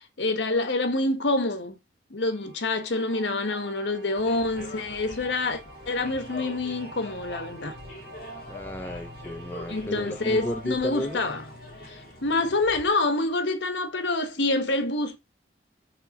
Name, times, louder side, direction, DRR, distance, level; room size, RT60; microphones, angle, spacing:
voice 1, 0.0-1.8 2.1-7.8 9.7-11.4 11.9-15.2, left 2 dB, 80° left, 1.1 m, -27 dB
sound 1, 2.2-13.3, right 2 dB, 65° right, 2.3 m, -48 dB
sound 2, 4.2-12.9, left 1 dB, 50° left, 2.2 m, -42 dB
voice 2, 8.5-11.2, left 1 dB, 10° left, 0.4 m, -34 dB
5.7 x 3.3 x 5.2 m
head